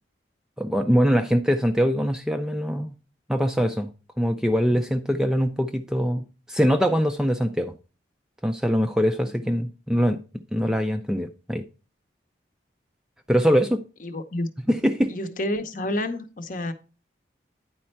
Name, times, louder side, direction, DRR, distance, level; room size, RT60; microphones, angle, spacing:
voice 1, 0.6-3.0 3.3-3.9 4.2-7.7 8.4-10.2 10.5-11.6 13.3-13.8 14.7-15.1, equal, 5° right, 0.3 m, -23 dB
voice 2, 14.0-14.5 15.1-16.7, left 1 dB, 45° left, 0.8 m, -29 dB
9.6 x 4.3 x 4.4 m
head